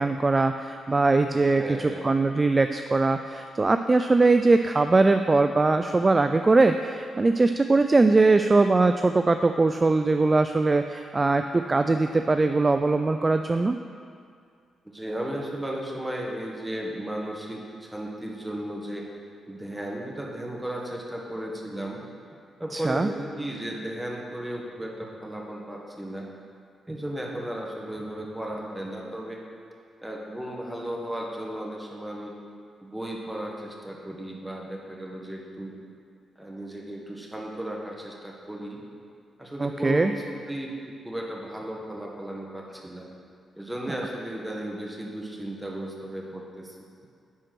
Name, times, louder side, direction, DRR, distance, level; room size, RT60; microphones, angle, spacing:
voice 1, 0.0-13.8 22.7-23.1 39.6-40.1, right 3 dB, 25° right, 7 dB, 0.3 m, -21 dB
voice 2, 1.3-2.1 14.8-19.0 19.5-22.0 22.6-26.3 26.9-29.4 30.0-32.3 32.8-35.8 36.4-38.8 39.4-40.7 41.0-43.1 43.5-46.7, right 1 dB, 10° right, -1 dB, 1.5 m, -35 dB
10.0 x 4.4 x 5.9 m, 2.3 s
cardioid pair, 85°, 0 cm